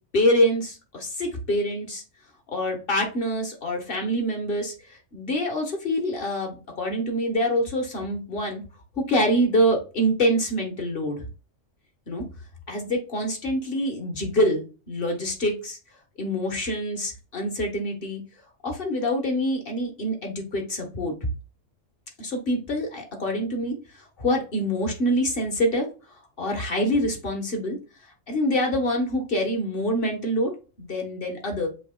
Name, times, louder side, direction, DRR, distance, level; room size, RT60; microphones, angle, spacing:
voice 1, 0.1-2.0 2.5-8.6 9.0-11.3 12.1-12.2 12.7-15.8 16.2-18.2 18.6-21.1 22.2-23.8 24.2-25.9 26.4-27.8 28.3-30.5 30.8-31.7, equal, 45° left, 3 dB, 1.4 m, -25 dB
7.1 x 3.0 x 2.3 m, 0.34 s
omnidirectional pair, 1.3 m